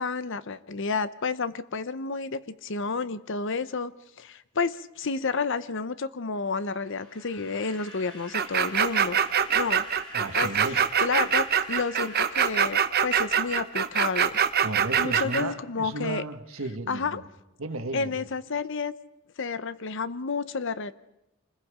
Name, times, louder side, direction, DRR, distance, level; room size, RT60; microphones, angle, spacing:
voice 1, 0.0-9.2 9.5-9.9 10.4-14.4 15.0-16.2 16.9-17.2 17.9-18.9 19.4-20.9, left 4 dB, 65° left, 14 dB, 0.8 m, -30 dB
sound 1, 6.4-13.4, left 1 dB, 20° left, 7.7 m, -47 dB
sound 2, 8.3-15.4, right 8 dB, 50° right, 1.0 m, -24 dB
voice 2, 10.1-10.8 14.6-17.2 17.6-18.2, right 2 dB, 85° right, 7 dB, 1.6 m, -34 dB
27.0 x 20.5 x 5.1 m, 0.93 s
head